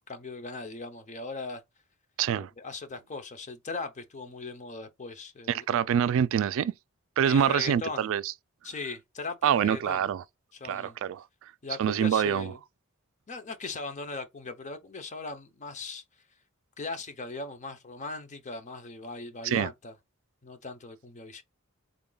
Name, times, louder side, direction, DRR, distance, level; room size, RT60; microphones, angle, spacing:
voice 1, 0.1-1.6 2.4-5.9 7.2-8.1 8.6-10.1 10.5-11.0 11.6-12.6 13.3-16.0 16.8-19.9 20.4-21.4, left 3 dB, 35° left, 0.6 m, -39 dB
voice 2, 2.2-2.5 5.5-6.7 7.2-8.3 9.4-10.2 10.7-11.2 11.8-12.5 19.4-19.7, right 9 dB, 65° right, 0.3 m, -25 dB
3.7 x 2.2 x 3.8 m
head